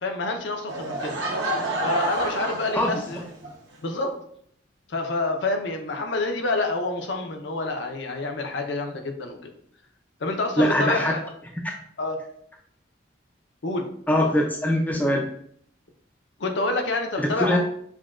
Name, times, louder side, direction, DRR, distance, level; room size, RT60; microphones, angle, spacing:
voice 1, 0.0-1.2 1.8-3.2 3.8-4.2 4.9-9.5 10.2-11.3 12.0-12.2 13.6-13.9 16.4-17.6, left 2 dB, 70° left, 4 dB, 0.6 m, -27 dB
Laughter / Crowd, 0.7-3.5, right 1 dB, 70° right, 0.8 m, -29 dB
voice 2, 10.6-11.1 14.1-15.3 17.2-17.6, left 1 dB, 10° left, 0 dB, 0.3 m, -22 dB
5.9 x 2.2 x 2.4 m, 0.66 s
head